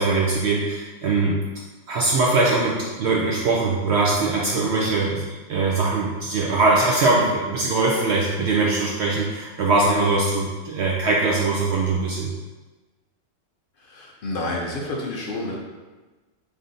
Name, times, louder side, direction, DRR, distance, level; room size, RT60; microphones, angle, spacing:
voice 1, 0.0-1.4 1.9-12.3, right 3 dB, 65° right, -3 dB, 0.7 m, -21 dB
voice 2, 13.8-15.6, left 2 dB, 65° left, -2 dB, 0.5 m, -29 dB
3.4 x 2.6 x 3.8 m, 1.2 s
omnidirectional pair, 1.5 m